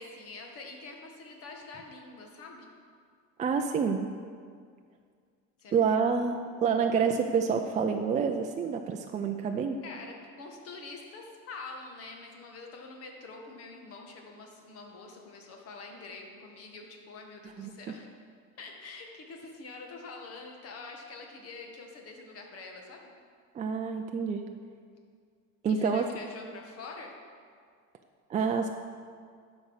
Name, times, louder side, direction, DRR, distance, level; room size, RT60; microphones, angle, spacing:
voice 1, 0.0-2.7 5.6-5.8 9.8-18.1 18.6-23.1 25.7-27.1, left 3 dB, 50° left, 2 dB, 1.7 m, -45 dB
voice 2, 3.4-4.1 5.7-9.8 17.6-17.7 23.5-24.4 25.6-26.1 28.3-28.7, right 6 dB, 25° right, 4 dB, 0.4 m, -28 dB
12.0 x 5.3 x 6.4 m, 2.1 s
cardioid pair, 150°, 30 cm